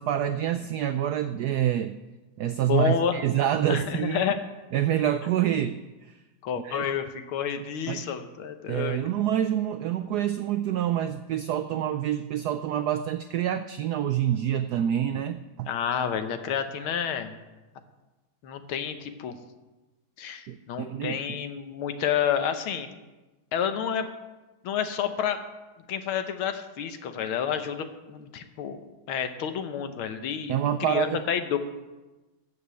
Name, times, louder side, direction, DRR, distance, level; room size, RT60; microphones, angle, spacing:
voice 1, 0.0-2.0 2.4-4.2 4.7-6.2 6.6-6.8 7.9-8.1 8.7-15.7 20.5-21.4 30.5-31.2, right 10 dB, 85° right, 11 dB, 0.8 m, -27 dB
voice 2, 2.7-3.2 3.7-4.4 6.4-9.0 15.7-17.3 18.4-19.4 20.2-22.9 23.5-24.1 24.6-25.4 25.9-28.8 29.1-30.6 30.8-31.6, left 8 dB, 85° left, 8 dB, 1.8 m, -29 dB
14.5 x 5.4 x 8.2 m, 1.1 s
omnidirectional pair, 2.3 m